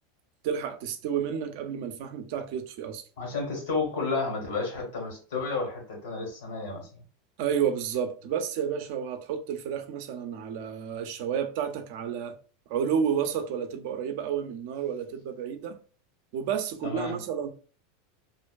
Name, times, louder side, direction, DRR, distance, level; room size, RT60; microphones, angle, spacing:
voice 1, 0.4-3.0 7.4-12.4 12.7-15.8 16.3-17.5, right 8 dB, 65° right, 0.4 m, -31 dB
voice 2, 3.2-6.9 16.8-17.2, left 4 dB, 80° left, 1.4 m, -31 dB
2.5 x 2.2 x 2.3 m
hypercardioid pair, 110°, 0 cm